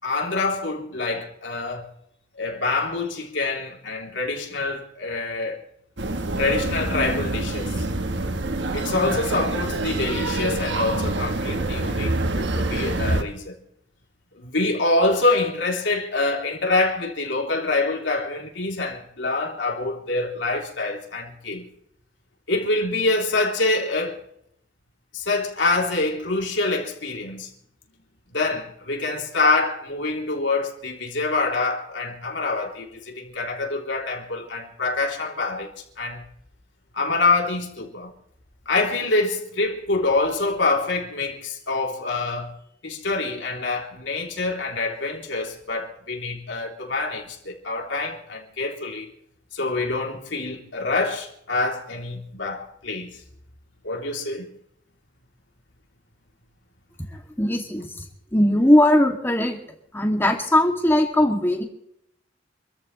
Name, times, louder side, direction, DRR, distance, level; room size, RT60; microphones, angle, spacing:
voice 1, 0.0-1.9 2.4-5.6 6.4-7.8 8.7-13.5 14.4-21.7 22.5-24.2 25.1-27.5 28.3-35.7 36.0-36.2 36.9-38.1 38.6-42.5 42.8-49.1 49.5-53.1 53.8-54.5, left 3 dB, 85° left, 3.3 m, -25 dB
sound 1, 6.0-13.2, right 2 dB, 70° right, 1.3 m, -26 dB
voice 2, 57.4-57.9 58.3-59.6 59.9-61.7, left 1 dB, 15° left, 2.5 m, -19 dB
27.5 x 14.5 x 3.2 m
head